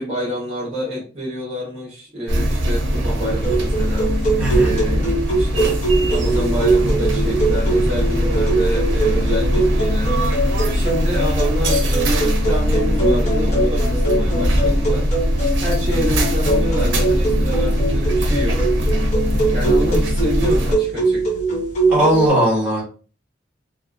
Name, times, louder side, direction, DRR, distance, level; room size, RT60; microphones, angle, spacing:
voice 1, 0.0-4.1 4.6-18.6 19.5-21.2, equal, 30° right, -6 dB, 0.8 m, -28 dB
sound 1, 2.3-20.8, equal, 80° right, 0.5 m, -20 dB
sound 2, 3.2-22.3, right 2 dB, 40° left, 0.9 m, -22 dB
voice 2, 4.4-4.7 21.9-22.8, equal, 10° right, -7 dB, 1.4 m, -18 dB
2.7 x 2.6 x 2.4 m, 0.38 s
head